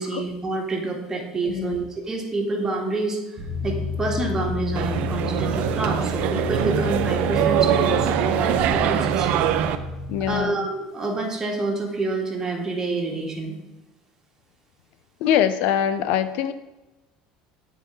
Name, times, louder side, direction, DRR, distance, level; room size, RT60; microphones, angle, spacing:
voice 1, 0.0-3.2 3.6-9.3 10.3-13.6, right 3 dB, 20° right, -1 dB, 1.7 m, -27 dB
voice 2, 1.5-1.8 10.1-10.7 15.2-16.5, left 9 dB, 70° left, 12 dB, 0.4 m, -23 dB
sound 1, 3.4-10.4, left 5 dB, 45° right, 1.0 m, -31 dB
sound 2, 4.8-9.8, right 10 dB, 65° right, 0.5 m, -23 dB
9.2 x 4.5 x 3.5 m, 1.0 s
supercardioid pair, 105°, 3 cm